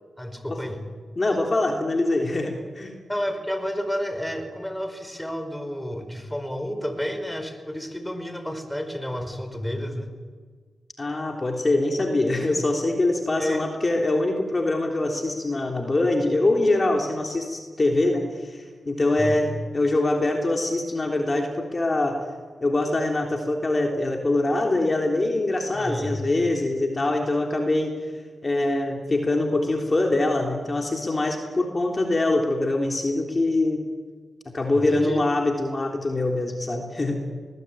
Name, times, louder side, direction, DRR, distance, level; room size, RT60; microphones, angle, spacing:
voice 1, 0.2-0.8 3.1-10.1 13.4-13.7 19.2-19.4 25.7-26.2 34.7-35.2, equal, 5° left, 8 dB, 5.0 m, -30 dB
voice 2, 1.2-2.9 11.0-22.2 22.6-27.9 28.4-33.8 34.5-37.3, left 2 dB, 35° left, 2 dB, 3.5 m, -24 dB
21.0 x 20.5 x 9.1 m, 1.5 s
cardioid pair, 50°, 0 cm